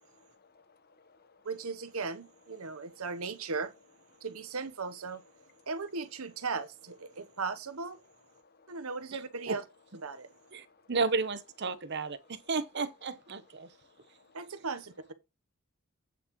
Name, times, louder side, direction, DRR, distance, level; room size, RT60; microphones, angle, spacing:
voice 1, 0.2-1.5 2.6-3.0 4.1-4.3 5.3-5.7 7.1-7.4 8.3-8.8 10.1-10.9 13.6-14.5, left 4 dB, 45° left, 1.1 m, -64 dB
voice 2, 1.4-3.7 4.2-5.2 5.7-8.0 8.7-9.6 10.0-10.3 14.3-15.1, right 4 dB, 80° right, 1.0 m, -37 dB
voice 3, 10.5-13.7, right 4 dB, 55° right, 0.9 m, -33 dB
8.9 x 7.3 x 3.1 m
head